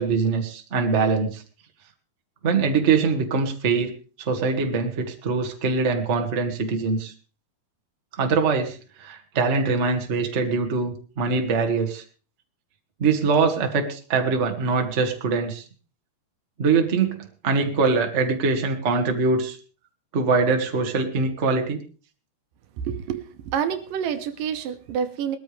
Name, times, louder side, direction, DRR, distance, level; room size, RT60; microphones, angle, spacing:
voice 1, 0.0-1.4 2.4-7.1 8.2-12.0 13.0-15.6 16.6-19.6 20.1-21.8, right 4 dB, 35° right, 4 dB, 1.2 m, -23 dB
voice 2, 22.8-25.4, right 8 dB, 75° right, 9 dB, 2.5 m, -28 dB
20.0 x 13.5 x 3.3 m, 0.38 s
omnidirectional pair, 4.1 m